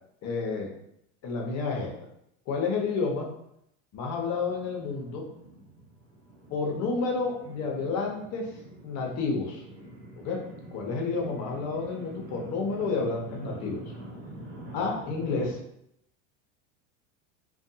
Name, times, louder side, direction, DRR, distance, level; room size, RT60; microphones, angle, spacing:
voice 1, 0.2-0.7 1.2-1.9 2.5-3.3 3.9-5.2 6.5-8.4 8.8-9.6 10.2-10.4 10.7-13.8 14.7-15.6, left 4 dB, 45° left, 0 dB, 0.8 m, -30 dB
sound 1, 4.1-15.5, right 1 dB, 80° right, 1.1 m, -45 dB
2.5 x 2.3 x 2.6 m, 0.76 s
supercardioid pair, 120°, 38 cm